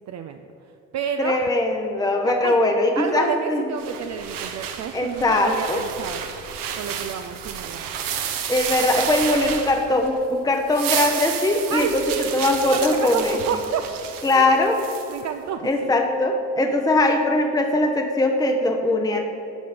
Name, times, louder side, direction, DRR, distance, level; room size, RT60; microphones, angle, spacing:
voice 1, 0.1-0.4 0.9-1.5 2.2-2.6 3.0-6.2 6.7-7.8 11.7-12.4 12.7-13.9 14.3-14.5 15.1-15.9 16.6-16.7, right 8 dB, 50° right, 6 dB, 0.5 m, -30 dB
voice 2, 1.2-3.6 4.9-5.9 8.5-12.0 12.3-13.4 14.2-14.8 15.6-19.3, left 2 dB, 10° left, 4 dB, 0.8 m, -21 dB
sound 1, 3.8-10.2 10.5-15.2, right 8 dB, 65° right, 0.9 m, -31 dB
10.0 x 5.4 x 5.0 m, 2.8 s
hypercardioid pair, 55°, 36 cm